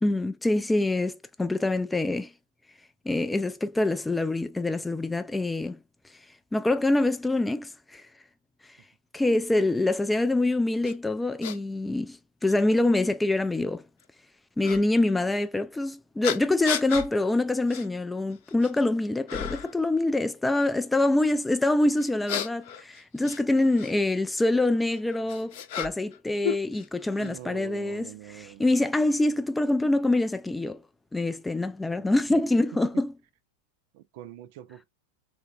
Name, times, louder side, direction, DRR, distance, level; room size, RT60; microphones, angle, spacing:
voice 1, 0.0-2.3 3.1-5.8 6.5-8.1 9.1-13.8 14.6-28.1 28.3-30.8 31.1-33.1, left 2 dB, 5° left, 0.3 m, -25 dB
sound 1, 10.8-10.9 11.4-11.6 12.5-12.6 14.6-14.8 16.2-17.1 17.7-17.9 18.3-18.8 19.3-19.8 22.0-23.9 24.9-26.2 26.4-27.3, left 9 dB, 50° left, 0.7 m, -34 dB
voice 2, 27.2-28.9 31.9-32.4 32.8-33.0 33.9-34.8, right 13 dB, 50° right, 0.5 m, -44 dB
3.5 x 3.1 x 2.6 m
figure-of-eight pair, 90°, 0 cm